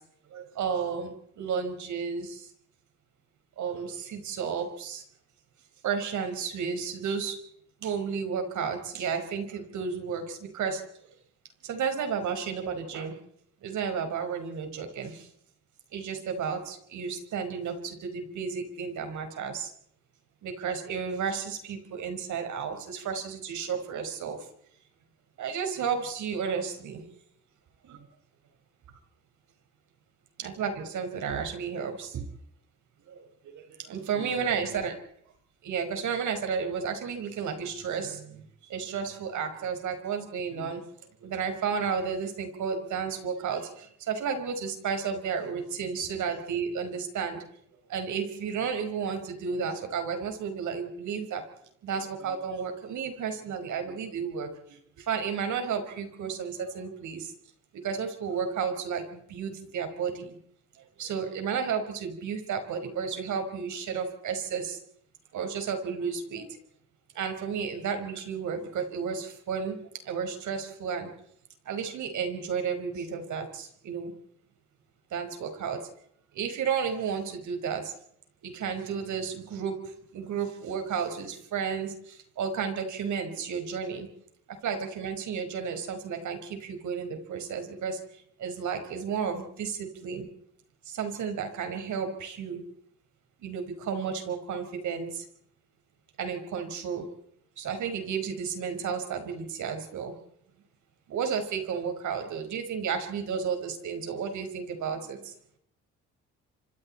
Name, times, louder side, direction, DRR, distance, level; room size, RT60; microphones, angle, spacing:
voice 1, 0.3-2.4 3.6-5.0 5.8-7.4 7.8-10.8 11.6-13.2 13.6-15.2 15.9-19.7 20.4-24.4 25.4-27.0 27.9-28.0 30.4-32.2 33.1-33.2 33.5-33.6 33.9-34.9 35.6-38.4 38.7-40.8 41.2-47.4 47.9-51.4 51.8-54.5 55.1-57.3 57.8-60.4 61.0-64.8 65.3-66.5 67.2-69.8 70.1-71.1 71.7-74.1 75.1-75.8 76.3-77.9 78.4-79.8 80.1-81.9 82.4-84.1 84.6-88.0 88.4-90.3 90.9-92.6 93.4-95.2 96.2-97.1 97.6-100.1 101.1-105.3, right 6 dB, 75° right, 6 dB, 5.2 m, -32 dB
29.5 x 25.0 x 4.4 m, 0.69 s
cardioid pair, 90°, 30 cm